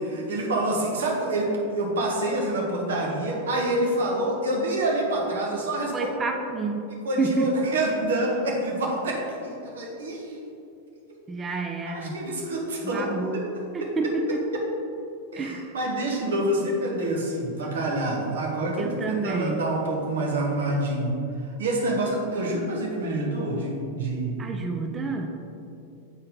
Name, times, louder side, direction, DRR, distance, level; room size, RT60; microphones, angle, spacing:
voice 1, 0.0-6.1 7.0-10.4 11.8-13.4 13.8-13.9 14.3-14.6 15.3-21.1 21.4-24.5, right 1 dB, 65° right, -1 dB, 1.2 m, -27 dB
voice 2, 5.9-6.9 7.2-7.5 11.3-12.2 12.8-13.5 13.7-14.4 15.4-15.7 18.8-19.7 24.4-25.3, right 4 dB, 20° right, 3 dB, 0.5 m, -29 dB
7.2 x 4.4 x 3.7 m, 2.6 s
figure-of-eight pair, 90°, 0 cm